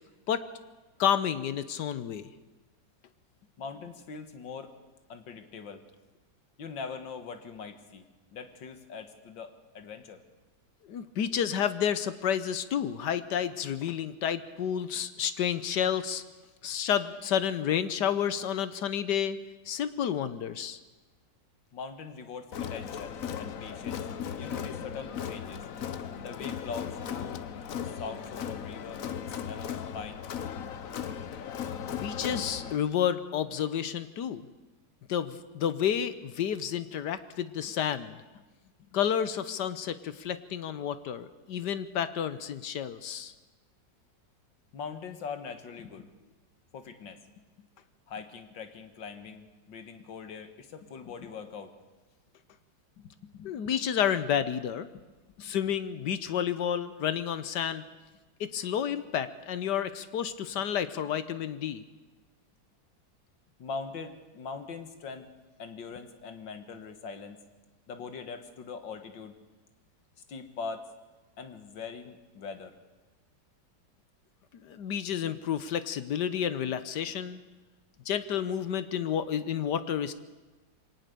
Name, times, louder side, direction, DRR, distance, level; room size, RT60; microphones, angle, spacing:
voice 1, 1.0-2.3 10.9-16.2 16.6-19.4 19.7-20.8 31.9-34.4 35.1-38.2 38.9-43.3 53.4-54.9 55.4-57.8 58.4-61.8 74.6-77.4 78.1-80.1, left 9 dB, 70° left, 13 dB, 1.5 m, -30 dB
voice 2, 3.6-4.7 5.1-5.8 6.6-8.0 8.3-10.2 21.7-24.1 24.4-25.6 26.2-27.4 27.8-30.3 44.7-46.1 46.7-47.2 48.1-51.7 53.0-53.5 54.9-55.0 55.4-55.7 63.6-65.3 65.6-67.4 67.9-69.3 70.3-70.8 71.4-72.7, left 5 dB, 90° left, 8 dB, 2.3 m, -42 dB
Crowd, 22.5-32.8, left 8 dB, 55° left, 1.2 m, -37 dB
23.0 x 18.5 x 6.8 m, 1.2 s
omnidirectional pair, 2.0 m